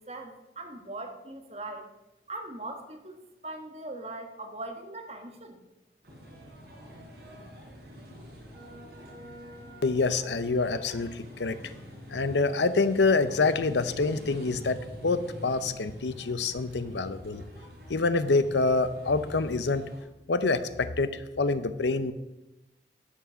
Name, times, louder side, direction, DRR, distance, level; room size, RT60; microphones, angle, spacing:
voice 1, 0.0-1.8 2.3-5.6, right 2 dB, 35° right, 4 dB, 1.4 m, -40 dB
sound 1, 6.0-20.0, equal, 65° right, 4.7 m, -46 dB
voice 2, 9.8-11.6 12.1-17.4 17.9-19.8 20.3-22.1, left 3 dB, 85° left, 12 dB, 0.7 m, -26 dB
11.5 x 6.2 x 6.8 m, 0.98 s
head